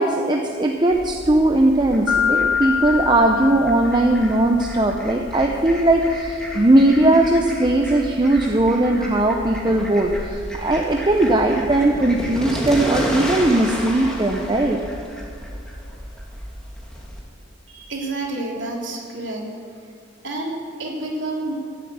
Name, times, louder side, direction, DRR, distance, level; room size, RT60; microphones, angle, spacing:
voice 1, 0.0-14.8, right 1 dB, 25° right, 2 dB, 0.7 m, -18 dB
Fowl, 0.9-17.2, equal, 5° left, 1.9 m, -32 dB
Mallet percussion, 2.1-4.6, left 7 dB, 90° left, 0.5 m, -24 dB
voice 2, 17.7-19.4 19.7-19.9 20.2-21.5, right 2 dB, 70° right, -1 dB, 2.9 m, -29 dB
15.0 x 8.0 x 8.5 m, 2.3 s
head